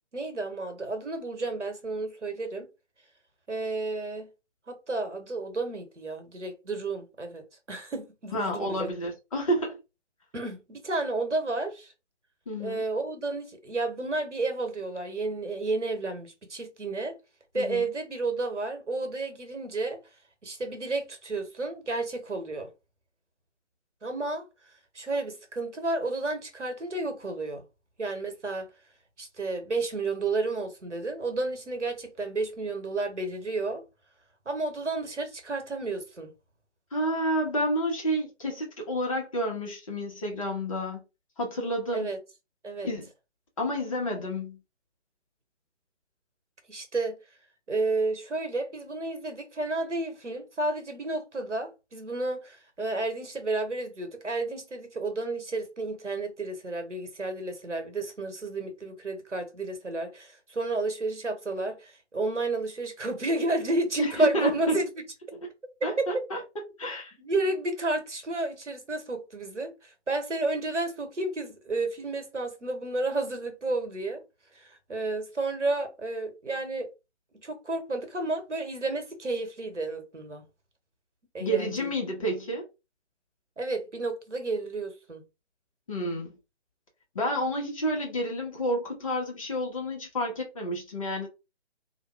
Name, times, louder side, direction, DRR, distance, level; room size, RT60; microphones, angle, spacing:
voice 1, 0.1-2.7 3.5-4.3 4.7-8.9 10.3-11.9 12.6-17.2 17.5-20.0 20.4-22.7 24.0-24.4 24.9-27.6 28.0-28.7 29.2-33.8 34.4-36.3 41.9-42.2 42.6-42.9 46.7-47.2 47.7-64.9 66.0-66.2 67.2-74.2 74.5-76.9 77.4-80.4 81.3-81.9 83.6-85.2, right 2 dB, 85° right, 1.1 m, -31 dB
voice 2, 8.3-9.8 12.5-12.8 17.5-17.9 36.9-41.0 41.4-42.1 42.8-43.0 43.6-44.6 64.0-64.8 65.8-66.4 66.8-67.1 81.4-82.6 85.9-86.3 87.1-91.3, equal, 30° left, 0.9 m, -30 dB
2.6 x 2.2 x 3.3 m
figure-of-eight pair, 145°, 35 cm